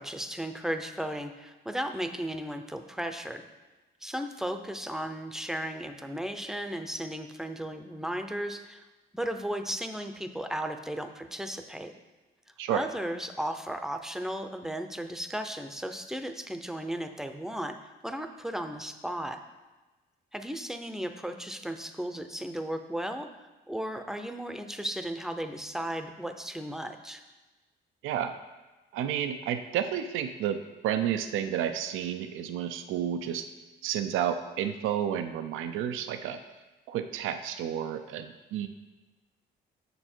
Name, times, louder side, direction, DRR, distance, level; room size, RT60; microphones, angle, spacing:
voice 1, 0.0-3.4 4.0-8.9 9.1-11.9 12.7-17.8 18.0-19.4 20.3-27.2, right 1 dB, ahead, 7 dB, 0.6 m, -35 dB
voice 2, 28.0-28.4 28.9-33.4 33.8-36.4 36.9-38.7, right 9 dB, 90° right, 8 dB, 0.5 m, -31 dB
6.8 x 6.7 x 4.4 m, 1.2 s
cardioid pair, 90°, 20 cm